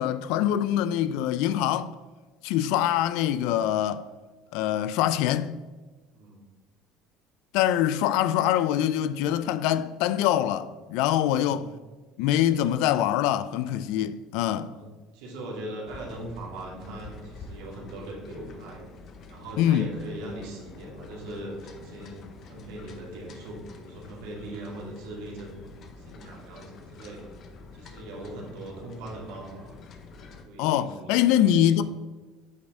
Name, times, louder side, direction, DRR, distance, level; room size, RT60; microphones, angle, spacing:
voice 1, 0.0-1.9 2.4-4.1 4.5-5.5 7.5-11.7 12.2-14.7 19.6-19.9 30.6-31.8, left 11 dB, 75° left, 0.4 m, -24 dB
voice 2, 6.1-6.4 11.3-11.8 14.6-18.9 19.3-25.5 26.0-27.3 27.7-29.8 30.2-31.8, right 1 dB, 85° right, 2.1 m, -40 dB
sound 1, 15.9-30.4, left 3 dB, 40° left, 0.7 m, -47 dB
8.2 x 5.1 x 3.7 m
cardioid pair, 150°, 0 cm